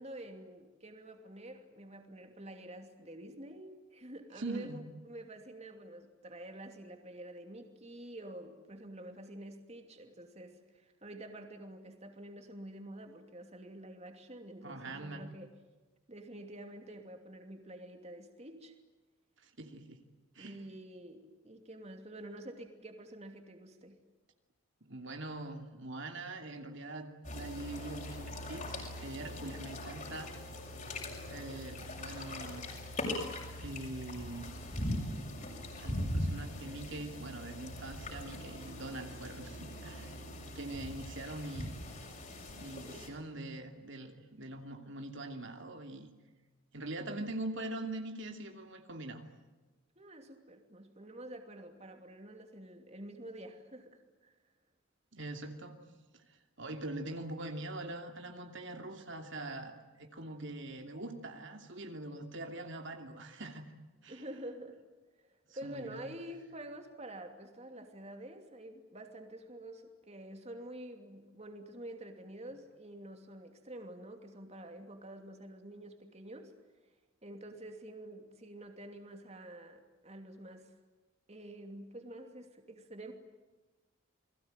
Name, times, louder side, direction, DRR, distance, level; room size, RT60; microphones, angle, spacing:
voice 1, 0.0-15.5 16.1-18.7 20.4-24.0 47.0-47.3 50.0-54.3 64.1-64.8 65.5-76.5 77.2-80.7 81.3-83.1, right 1 dB, 30° right, 5 dB, 2.8 m, -48 dB
voice 2, 4.3-4.8 14.6-15.2 19.4-20.0 20.3-20.6 24.9-30.3 31.2-32.7 33.6-34.5 35.8-40.2 40.5-41.8 42.6-46.1 46.7-49.2 55.1-55.7 56.1-63.6 64.0-64.2 65.6-66.1, right 2 dB, 60° right, 4 dB, 2.8 m, -43 dB
sound 1, 27.2-43.1, left 1 dB, 35° left, 6.9 m, -41 dB
29.5 x 21.5 x 9.2 m, 1.2 s
head